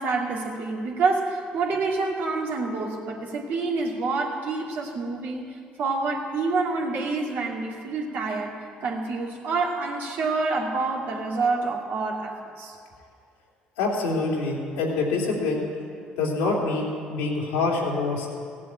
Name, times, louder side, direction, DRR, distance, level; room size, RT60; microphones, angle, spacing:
voice 1, 0.0-12.7, right 3 dB, 65° right, -1 dB, 2.4 m, -27 dB
voice 2, 13.8-15.6 16.2-18.3, left 3 dB, 90° left, -3 dB, 2.9 m, -25 dB
16.0 x 7.6 x 8.9 m, 2.3 s
supercardioid pair, 60°, 4 cm